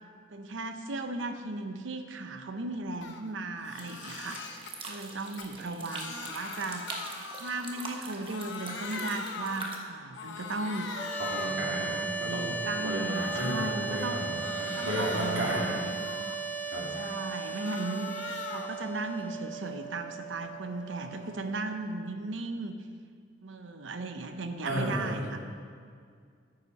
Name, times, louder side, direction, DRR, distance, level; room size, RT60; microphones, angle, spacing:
voice 1, 0.3-4.4 4.9-10.9 11.6-14.3 14.7-15.9 16.9-18.1 18.5-22.8 23.4-25.4, right 2 dB, 70° right, 7 dB, 0.7 m, -36 dB
Crying sobbing, 3.0-3.2 3.6-4.7 5.2-9.8 10.1-11.7 12.1-13.8 14.2-16.5 16.9-18.8 19.2-21.6, left 4 dB, 65° left, 0.9 m, -42 dB
sound 1, 3.8-9.8, right 3 dB, 25° right, 1.1 m, -43 dB
sound 2, 10.9-22.0, right 4 dB, 10° left, 0.5 m, -37 dB
voice 2, 11.2-15.7 16.0-16.1 16.7-16.8 17.5-17.6 24.6-25.4, right 1 dB, 90° right, -4 dB, 2.7 m, -33 dB
9.3 x 8.3 x 5.3 m, 2.1 s
head